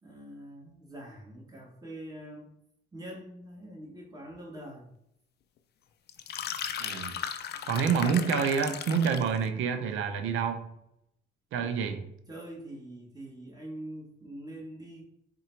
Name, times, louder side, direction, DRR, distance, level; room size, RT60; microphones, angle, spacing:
voice 1, 0.0-2.5 2.9-4.9 11.6-11.7 12.3-15.0, right 1 dB, 20° right, -2 dB, 1.4 m, -44 dB
sound 1, 6.1-9.4, left 8 dB, 55° left, 0.4 m, -36 dB
voice 2, 6.8-7.2 7.7-10.7 11.5-12.1, right 6 dB, 85° right, 8 dB, 0.6 m, -28 dB
3.7 x 2.2 x 4.4 m, 0.77 s
cardioid pair, 90°, 20 cm